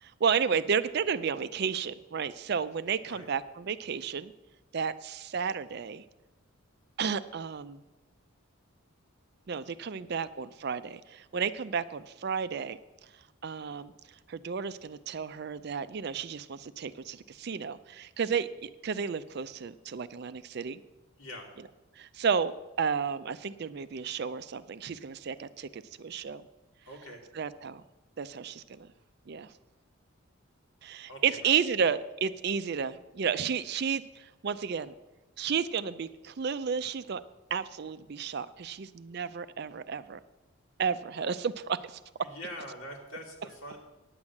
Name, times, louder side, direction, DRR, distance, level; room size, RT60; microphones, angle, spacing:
voice 1, 0.0-4.3 4.7-6.0 7.0-7.8 9.5-12.8 13.4-13.9 14.3-20.8 22.0-26.4 27.3-27.8 28.2-28.9 29.3-29.5 30.8-34.9 35.4-37.2 37.5-40.2 40.8-42.3, right 6 dB, 50° right, 14 dB, 0.4 m, -32 dB
voice 2, 21.2-21.5 26.8-27.2 31.1-31.2 42.2-43.8, equal, 80° left, 0 dB, 2.4 m, -43 dB
9.7 x 8.0 x 7.2 m, 1.1 s
head